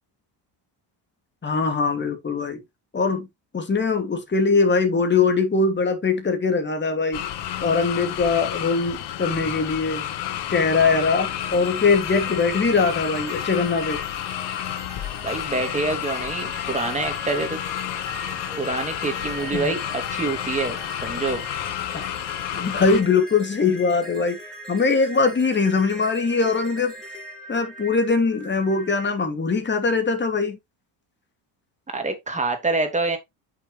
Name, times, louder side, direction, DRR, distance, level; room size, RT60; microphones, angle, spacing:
voice 1, 1.4-2.6 2.9-3.3 3.5-7.2 7.6-10.0 10.5-14.0 19.5-19.7 21.9-22.1 22.5-24.4 24.7-26.9 27.5-30.6, left 4 dB, 25° left, 2.5 m, -21 dB
sound 1, 7.1-23.0, left 11 dB, 75° left, 1.5 m, -30 dB
sound 2, 11.4-29.1, right 1 dB, ahead, 4.7 m, -40 dB
voice 2, 15.2-17.6 18.6-21.4 31.9-33.2, right 3 dB, 15° right, 2.8 m, -26 dB
8.4 x 6.6 x 3.3 m
cardioid pair, 115°, 43 cm